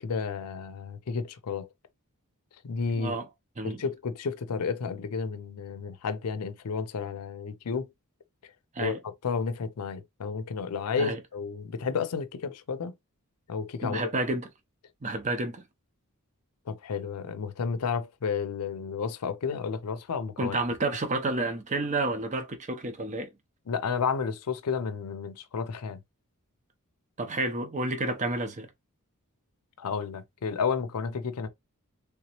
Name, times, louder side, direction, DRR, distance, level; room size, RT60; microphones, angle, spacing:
voice 1, 0.0-1.7 2.6-3.1 3.6-7.9 8.8-9.0 9.2-12.9 13.5-14.1 16.7-20.5 23.7-26.0 29.8-31.5, left 5 dB, 90° left, 0.5 m, -31 dB
voice 2, 2.9-3.3 3.6-3.8 8.7-9.0 11.0-11.2 13.8-14.5 15.0-15.6 20.4-23.3 27.2-28.7, right 2 dB, 35° right, 0.7 m, -30 dB
3.4 x 2.9 x 2.9 m
head